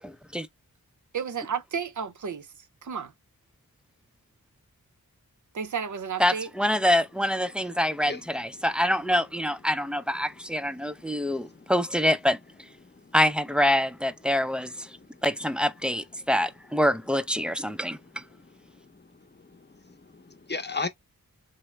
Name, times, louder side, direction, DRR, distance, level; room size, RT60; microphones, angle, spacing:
voice 1, 1.1-2.5 2.8-3.1 5.5-6.5, right 6 dB, 55° right, 0.6 m, -32 dB
voice 2, 6.2-12.4 13.1-14.7 15.2-18.0, equal, 5° right, 0.3 m, -25 dB
voice 3, 10.6-11.7 12.8-13.1 14.9-15.1 16.2-16.3 17.6-18.6 18.8-20.9, left 3 dB, 30° left, 0.7 m, -39 dB
3.2 x 2.0 x 3.1 m
wide cardioid pair, 50°, 36 cm